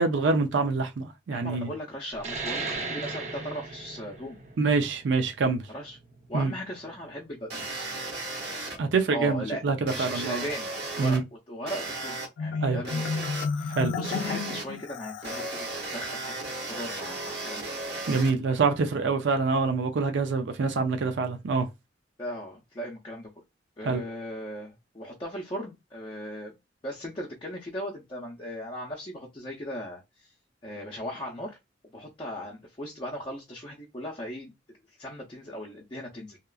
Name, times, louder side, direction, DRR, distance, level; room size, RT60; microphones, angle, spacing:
voice 1, 0.0-1.7 4.6-5.6 6.3-6.5 8.8-10.5 11.0-11.2 12.6-12.8 13.7-13.9 18.1-21.7 23.8-24.0, right 4 dB, 80° right, 0.4 m, -25 dB
voice 2, 1.3-4.4 5.7-6.0 6.3-7.9 9.1-13.3 13.6-15.7 15.9-17.7 22.2-23.3 23.8-26.5 26.8-30.3 30.6-31.6 31.9-36.4, equal, 25° left, 0.5 m, -38 dB
sound 1, 2.2-7.3, right 3 dB, 40° right, 0.7 m, -37 dB
sound 2, 7.5-8.8 9.9-11.2 11.7-12.3 12.8-13.4 14.0-14.6 15.2-18.3, right 2 dB, 65° right, 1.0 m, -35 dB
Marimba xylophone, 12.4-15.7, left 5 dB, 80° left, 0.3 m, -32 dB
2.8 x 2.3 x 2.3 m
head